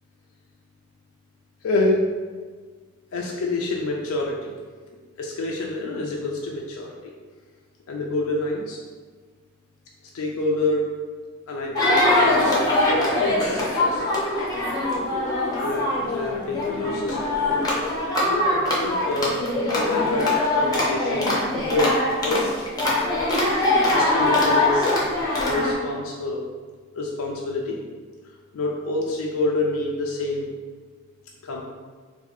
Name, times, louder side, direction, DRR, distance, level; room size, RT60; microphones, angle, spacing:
voice 1, 1.6-2.0 3.1-4.5 5.2-6.9 7.9-8.8 10.1-10.8 11.5-14.0 15.6-17.7 18.2-19.4 19.7-21.9 22.2-22.7 23.4-24.9 25.4-26.4 26.9-27.8 28.5-30.5 31.4-31.6, left 2 dB, 85° left, -1 dB, 0.4 m, -27 dB
sound 1, 11.8-25.7, left 1 dB, 20° left, 0.6 m, -22 dB
2.6 x 2.6 x 4.0 m, 1.5 s
head